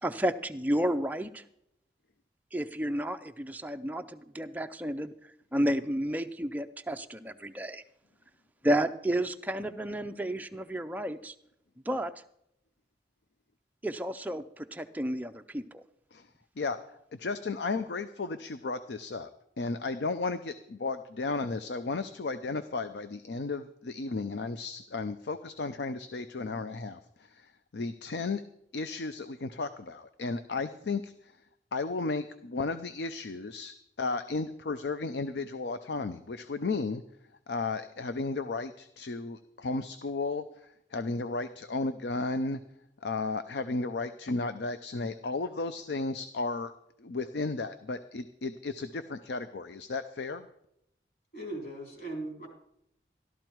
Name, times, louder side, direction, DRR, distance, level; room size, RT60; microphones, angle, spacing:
voice 1, 0.0-1.4 2.5-5.1 5.5-7.8 8.6-11.3 11.9-12.1 13.8-15.8, right 1 dB, 10° right, 7 dB, 0.5 m, -31 dB
voice 2, 17.1-19.3 19.6-28.4 28.7-31.4 31.7-37.0 37.5-40.4 40.9-42.6 43.0-46.7 47.0-50.5, left 3 dB, 75° left, 11 dB, 0.6 m, -34 dB
voice 3, 51.3-52.5, right 2 dB, 55° left, -1 dB, 4.0 m, -38 dB
13.5 x 12.5 x 4.5 m, 0.77 s
head